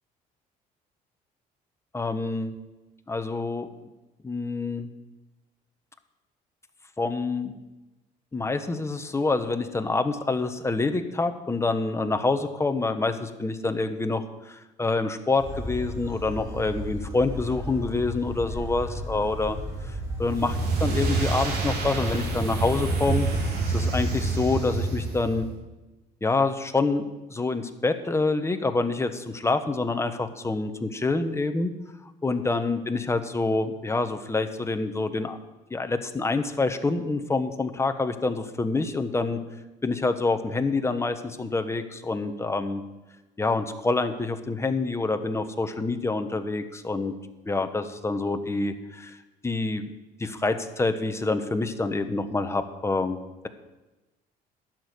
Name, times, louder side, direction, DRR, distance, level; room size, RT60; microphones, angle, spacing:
voice 1, 1.9-2.6 3.1-3.7 4.2-4.9 7.0-7.6 8.3-19.6 19.9-23.3 23.7-25.5 26.2-31.7 32.2-35.4 35.7-39.4 39.8-42.8 43.4-47.1 47.5-49.2 49.4-49.9 50.2-53.2, left 3 dB, 15° left, 8 dB, 1.1 m, -27 dB
sound 1, 15.4-23.5, equal, 15° right, 4.7 m, -35 dB
sound 2, 20.2-25.5, right 3 dB, 75° right, 3.4 m, -27 dB
12.5 x 6.4 x 9.3 m, 1.1 s
cardioid pair, 110°, 17 cm